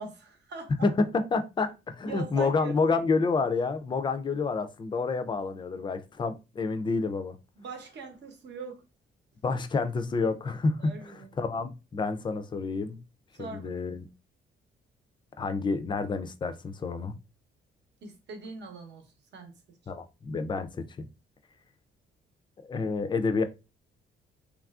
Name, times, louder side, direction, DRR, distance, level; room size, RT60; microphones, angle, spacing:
voice 1, 0.0-0.7 2.1-3.0 7.6-8.8 10.8-11.3 13.3-13.7 18.0-19.1 19.3-19.5, right 4 dB, 65° right, 0.8 m, -42 dB
voice 2, 0.8-7.4 9.4-10.9 11.4-13.0 13.4-14.0 15.4-17.1 19.9-20.8 22.6-23.4, left 4 dB, 25° left, 0.4 m, -29 dB
3.1 x 2.4 x 2.3 m
cardioid pair, 90°, 20 cm